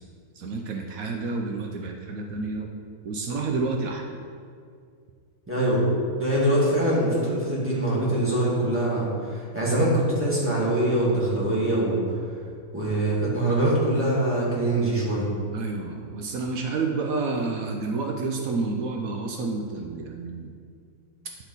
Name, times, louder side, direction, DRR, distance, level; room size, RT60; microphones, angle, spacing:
voice 1, 0.4-2.7 3.0-4.0 15.5-20.5, right 3 dB, 75° right, 2 dB, 1.0 m, -29 dB
voice 2, 5.5-5.8 6.2-12.0 12.7-15.3, right 1 dB, 10° right, -7 dB, 1.8 m, -23 dB
9.7 x 4.4 x 4.0 m, 2.2 s
omnidirectional pair, 1.5 m